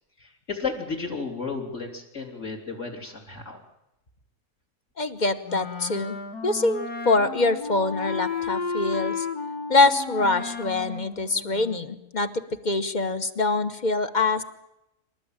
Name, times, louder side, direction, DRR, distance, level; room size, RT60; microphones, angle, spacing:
voice 1, 0.2-3.6, left 4 dB, 50° left, 1 dB, 3.7 m, -33 dB
voice 2, 5.0-6.2 6.4-9.3 9.7-12.3 12.6-14.4, left 3 dB, 35° left, 10 dB, 1.0 m, -24 dB
Wind instrument woodwind instrument, 5.4-12.1, left 5 dB, 85° left, 2.2 m, -33 dB
27.0 x 13.0 x 8.9 m, 0.89 s
omnidirectional pair, 1.6 m